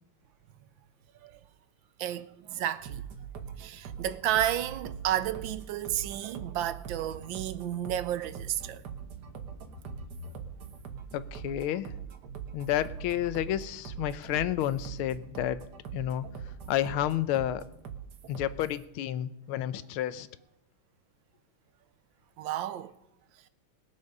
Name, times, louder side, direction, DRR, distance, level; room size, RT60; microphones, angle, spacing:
voice 1, 2.0-3.0 3.6-8.8 22.4-22.9, right 11 dB, 75° right, 1.3 m, -32 dB
sound 1, 2.9-18.8, right 7 dB, 55° right, 1.6 m, -42 dB
voice 2, 11.1-11.9 12.5-15.6 15.9-16.3 16.7-17.6 18.3-20.3, left 12 dB, 80° left, 1.5 m, -30 dB
20.5 x 7.1 x 5.3 m
omnidirectional pair, 2.3 m